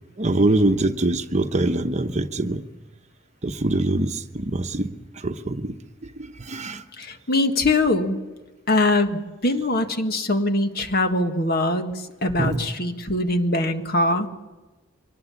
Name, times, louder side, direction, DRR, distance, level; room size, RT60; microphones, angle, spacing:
voice 1, 0.2-2.6 3.4-5.7 6.0-6.8 12.4-12.7, right 2 dB, 35° right, 7 dB, 1.0 m, -24 dB
voice 2, 7.0-8.2 8.7-14.3, left 2 dB, 50° left, 6 dB, 1.7 m, -22 dB
24.0 x 20.0 x 7.1 m, 1.1 s
head